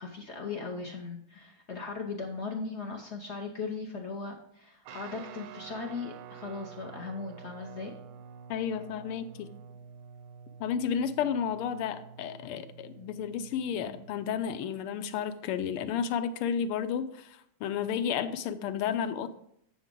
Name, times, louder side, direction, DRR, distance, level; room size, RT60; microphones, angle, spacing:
voice 1, 0.0-7.9, left 4 dB, 60° left, 1 dB, 0.7 m, -38 dB
Guitar, 4.8-14.7, right 7 dB, 80° right, 1.4 m, -49 dB
voice 2, 8.5-9.5 10.6-19.3, left 8 dB, 85° left, 11 dB, 1.6 m, -32 dB
8.6 x 7.1 x 3.7 m, 0.70 s
omnidirectional pair, 2.4 m